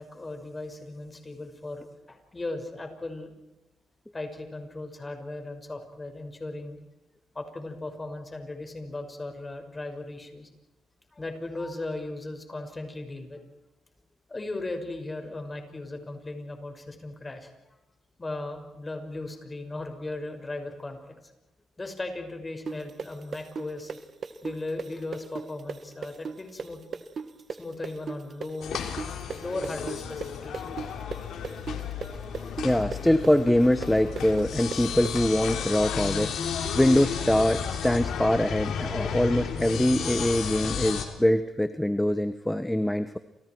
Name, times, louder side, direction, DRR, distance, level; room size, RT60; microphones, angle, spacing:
voice 1, 0.0-3.3 4.1-6.8 7.3-10.5 11.1-13.4 14.3-17.5 18.2-21.0 21.8-23.9 24.4-26.8 27.6-28.8 29.4-30.8, left 2 dB, 20° left, 5 dB, 5.9 m, -37 dB
sound 1, 22.7-30.3 30.5-35.1, right 6 dB, 50° right, 2.0 m, -35 dB
sound 2, 28.6-41.1, left 7 dB, 75° left, 3.5 m, -33 dB
voice 2, 32.6-36.3 36.7-43.2, left 1 dB, 5° left, 11 dB, 1.1 m, -23 dB
30.0 x 28.5 x 4.7 m, 1.0 s
cardioid pair, 90°, 0 cm